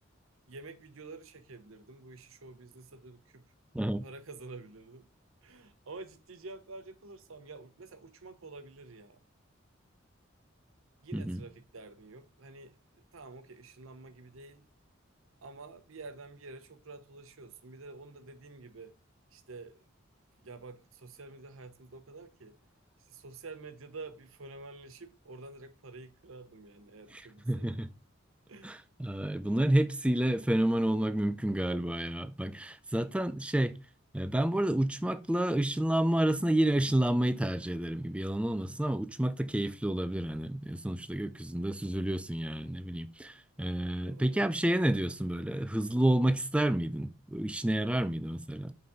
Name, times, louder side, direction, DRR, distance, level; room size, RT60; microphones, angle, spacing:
voice 1, 0.5-3.4 4.0-5.1 5.4-9.2 11.0-12.8 13.1-14.6 15.4-18.9 19.3-19.8 20.4-22.6 23.1-27.8 28.5-28.7 44.0-44.4, right 3 dB, 85° right, 0.8 m, -48 dB
voice 2, 3.7-4.1 11.1-11.4 27.1-27.9 28.6-33.7 34.1-48.7, right 1 dB, 5° right, 0.3 m, -29 dB
5.5 x 3.9 x 4.8 m
head